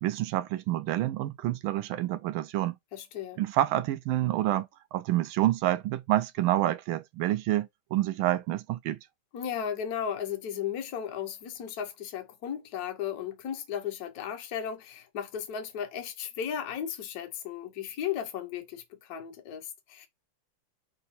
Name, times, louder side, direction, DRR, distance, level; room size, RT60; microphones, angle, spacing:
voice 1, 0.0-2.8 3.4-9.0, right 14 dB, 80° right, 1.4 m, -28 dB
voice 2, 2.9-3.4 9.3-20.1, left 8 dB, 60° left, 1.2 m, -35 dB
4.0 x 2.7 x 4.1 m
omnidirectional pair, 2.3 m